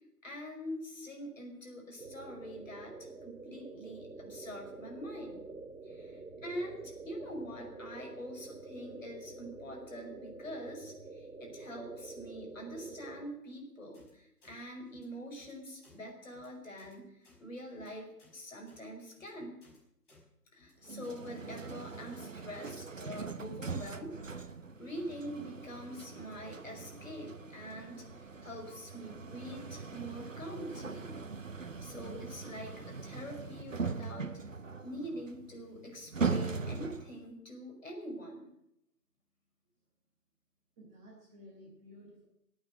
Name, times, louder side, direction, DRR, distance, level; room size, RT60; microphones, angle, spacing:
voice 1, 0.2-5.5 5.8-17.1 17.4-19.6 20.5-24.2 24.8-31.2 31.8-34.3 34.8-38.5, equal, 50° left, 1 dB, 5.5 m, -44 dB
sound 1, 2.0-13.3, right 3 dB, 75° right, 2.7 m, -48 dB
voice 2, 5.9-6.4 40.8-42.3, equal, 10° right, -8 dB, 3.0 m, -55 dB
sound 2, 13.9-14.1 14.4-14.5 14.9-15.0 15.4-15.5 15.8-16.0 16.3-16.5 16.8-16.9 17.2-17.4 17.7-17.9 18.2-18.4 18.7-18.8 19.1-19.3 19.6-19.8 20.1-20.2 20.5-20.7 21.0-21.2, left 3 dB, 30° left, 5.8 m, -62 dB
sound 3, 20.8-37.3, right 4 dB, 50° right, 1.1 m, -40 dB
24.5 x 9.0 x 6.4 m, 0.80 s
figure-of-eight pair, 160°, 48 cm